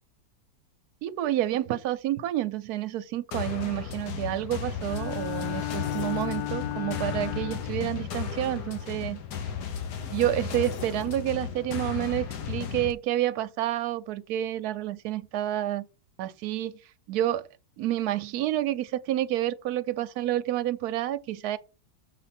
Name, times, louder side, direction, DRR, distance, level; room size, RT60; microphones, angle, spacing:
voice 1, 1.0-9.2 10.1-15.8 16.2-16.8 17.1-17.5 17.8-21.6, right 13 dB, 65° right, 1.1 m, -29 dB
sound 1, 3.3-12.9, left 7 dB, 70° left, 1.5 m, -35 dB
Bowed string instrument, 4.8-7.9, left 14 dB, 85° left, 1.4 m, -34 dB
6.9 x 4.2 x 5.9 m
omnidirectional pair, 1.9 m